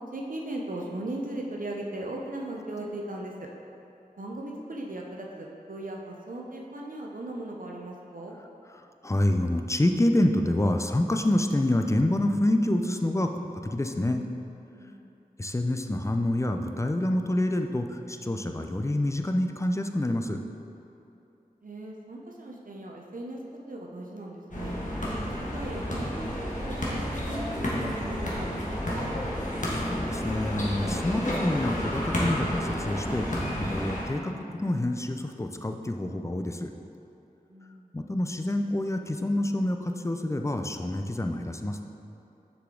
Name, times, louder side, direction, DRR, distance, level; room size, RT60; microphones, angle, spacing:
voice 1, 0.1-3.5 4.2-8.4 14.7-15.1 21.6-23.4 23.7-24.8 25.4-29.1 37.5-37.9, right 1 dB, 60° right, -1 dB, 0.6 m, -38 dB
voice 2, 9.0-14.2 15.4-20.4 29.9-36.7 37.9-41.8, left 1 dB, 20° left, 5 dB, 0.4 m, -27 dB
sound 1, 24.5-34.1, equal, 55° left, 1.3 m, -31 dB
6.7 x 4.9 x 3.7 m, 2.8 s
wide cardioid pair, 45°, 16 cm